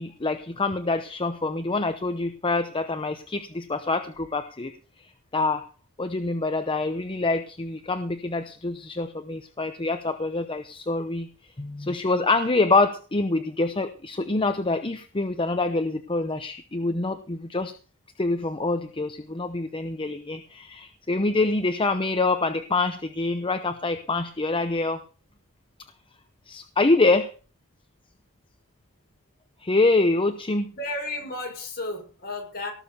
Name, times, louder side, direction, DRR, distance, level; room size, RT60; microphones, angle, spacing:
voice 1, 0.0-4.7 5.3-5.6 6.0-11.3 11.6-17.7 18.2-25.0 26.5-27.3 29.6-30.7, left 3 dB, 25° left, 8 dB, 0.8 m, -25 dB
voice 2, 30.7-32.7, left 2 dB, 45° left, 1 dB, 6.7 m, -33 dB
18.5 x 6.7 x 6.8 m, 0.38 s
head